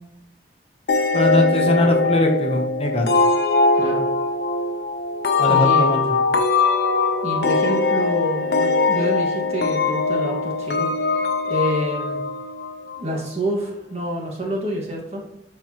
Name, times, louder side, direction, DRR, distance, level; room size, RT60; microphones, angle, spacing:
sound 1, 0.9-13.3, left 3 dB, 65° left, 0.8 m, -21 dB
voice 1, 1.1-3.1 5.4-6.0, left 1 dB, 30° left, 2 dB, 0.9 m, -21 dB
voice 2, 3.7-4.1 5.5-5.9 7.2-10.9 11.4-12.2 13.0-15.2, equal, 35° right, -1 dB, 1.7 m, -27 dB
12.0 x 4.6 x 3.0 m, 0.78 s
head